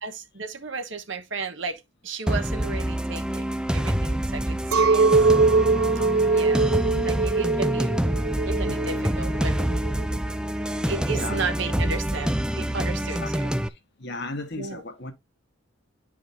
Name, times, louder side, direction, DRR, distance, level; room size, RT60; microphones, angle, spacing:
voice 1, 0.0-5.3 6.2-6.6 7.0-8.0 8.4-9.6 10.8-13.5 14.5-14.8, right 4 dB, 60° right, 1.3 m, -34 dB
sound 1, 2.3-13.7, right 1 dB, 5° right, 0.4 m, -26 dB
Chink clink, 4.7-10.2, right 3 dB, 90° right, 0.7 m, -22 dB
voice 2, 6.0-7.2 8.6-9.0 11.1-11.4 13.2-15.1, left 2 dB, 55° left, 1.5 m, -37 dB
11.0 x 5.0 x 2.7 m
head